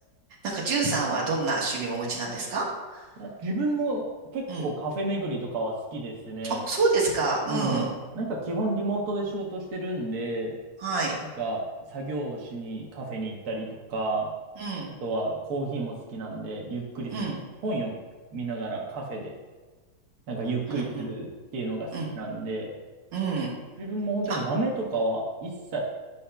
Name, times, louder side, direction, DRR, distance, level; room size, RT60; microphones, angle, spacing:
voice 1, 0.4-2.6 2.9-3.1 4.5-4.7 6.5-7.9 10.8-11.1 14.6-14.9 17.1-17.4 20.7-21.1 21.9-22.1 23.1-23.5 24.3-24.4, right 3 dB, 90° right, -5 dB, 2.2 m, -27 dB
voice 2, 3.2-4.1 4.3-6.6 7.5-7.9 8.1-10.6 11.4-14.3 15.0-17.2 17.6-18.0 18.3-19.3 20.3-21.9 22.1-22.7 23.8-25.8, right 2 dB, 60° right, -1 dB, 1.4 m, -31 dB
10.0 x 5.5 x 2.2 m, 1.3 s
omnidirectional pair, 2.0 m